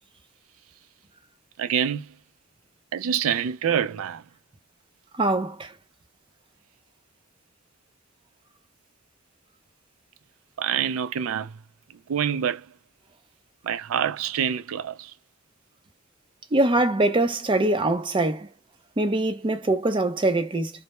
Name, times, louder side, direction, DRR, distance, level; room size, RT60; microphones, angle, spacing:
voice 1, 1.6-2.1 2.9-4.2 10.6-11.5 12.1-12.6 13.6-15.1, right 8 dB, 85° right, 0.3 m, -26 dB
voice 2, 5.2-5.7 16.5-18.5 19.0-20.7, right 2 dB, 25° right, 0.5 m, -23 dB
2.1 x 2.0 x 2.9 m
head